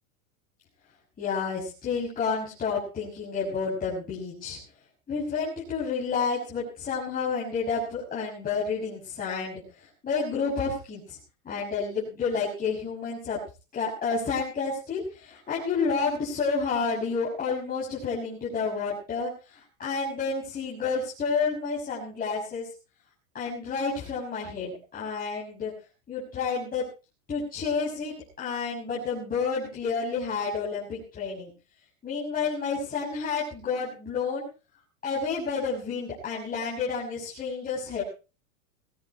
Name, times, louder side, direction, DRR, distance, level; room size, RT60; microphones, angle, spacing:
voice 1, 1.2-4.6 5.1-11.2 11.4-13.4 13.7-22.7 23.3-25.7 26.1-26.8 27.3-31.5 32.0-34.5 35.0-38.0, left 5 dB, 20° left, -7 dB, 6.6 m, -30 dB
19.0 x 16.0 x 3.1 m, 0.33 s
supercardioid pair, 145°, 42 cm